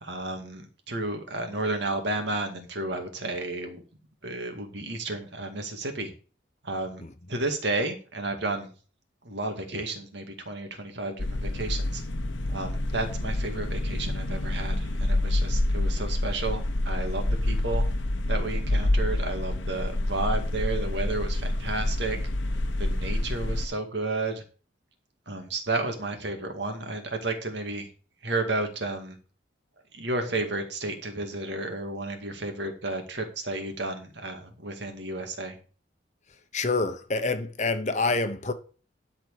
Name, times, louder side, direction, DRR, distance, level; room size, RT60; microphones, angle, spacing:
voice 1, 0.0-3.8 4.2-6.1 6.6-7.0 7.3-8.7 9.2-12.0 12.5-17.8 18.3-22.3 22.8-24.4 25.3-27.9 28.2-29.2 29.9-35.6, right 2 dB, 60° right, 2.2 m, -32 dB
sound 1, 11.2-23.7, left 1 dB, 80° left, 1.2 m, -27 dB
voice 2, 36.5-38.5, left 3 dB, 35° left, 1.0 m, -27 dB
12.0 x 4.5 x 6.6 m
head